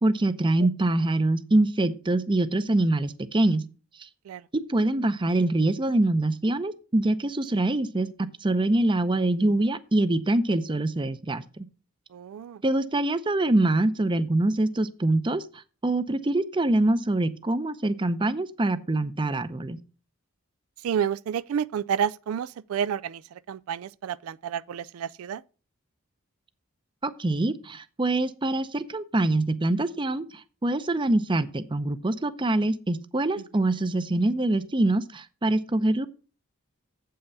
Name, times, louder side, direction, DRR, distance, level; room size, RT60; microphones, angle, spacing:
voice 1, 0.0-3.6 4.0-4.1 4.5-11.7 12.6-15.4 15.8-19.8 27.0-36.1, right 2 dB, 25° right, 0.6 m, -24 dB
voice 2, 12.1-12.6 20.8-25.4 33.4-33.5, right 8 dB, 85° right, 0.3 m, -30 dB
7.9 x 5.6 x 6.6 m
head